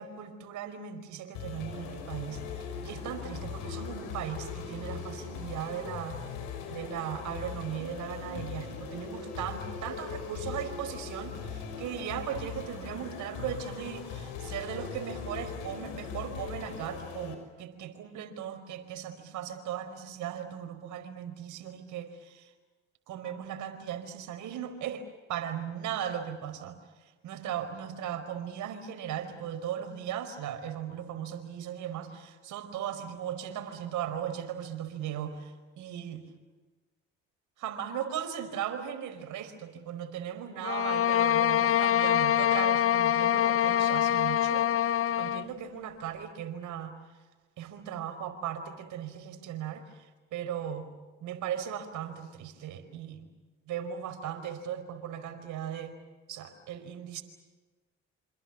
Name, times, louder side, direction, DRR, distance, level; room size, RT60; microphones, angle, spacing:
voice 1, 0.0-6.2 6.7-22.5 23.1-36.3 37.6-46.9 47.6-50.9 51.2-53.3 53.6-55.9 56.3-57.2, right 9 dB, 75° right, 8 dB, 4.8 m, -38 dB
sound 1, 1.3-17.3, left 6 dB, 85° left, 6.1 m, -40 dB
sound 2, 40.6-45.5, left 11 dB, 45° left, 0.8 m, -25 dB
28.0 x 27.0 x 7.2 m, 1.3 s
supercardioid pair, 60°, 30 cm